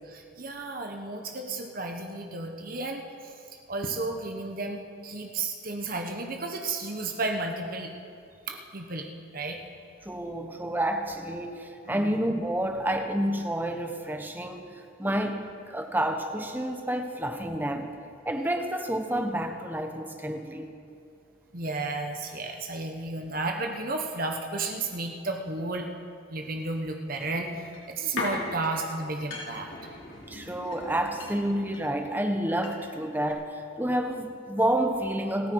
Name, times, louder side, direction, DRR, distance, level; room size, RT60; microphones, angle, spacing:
voice 1, 0.1-3.3 3.7-7.9 8.5-9.1 9.3-9.6 11.9-12.2 15.0-15.3 21.5-25.9 26.3-29.7, right 2 dB, 45° right, 3 dB, 1.3 m, -33 dB
voice 2, 10.0-14.7 15.0-17.9 18.2-20.7 30.3-35.5, right 1 dB, 10° right, 5 dB, 1.0 m, -29 dB
sound 1, 27.2-33.0 33.3-33.4, left 2 dB, 80° left, 4.1 m, -39 dB
30.0 x 10.5 x 4.7 m, 2.4 s
head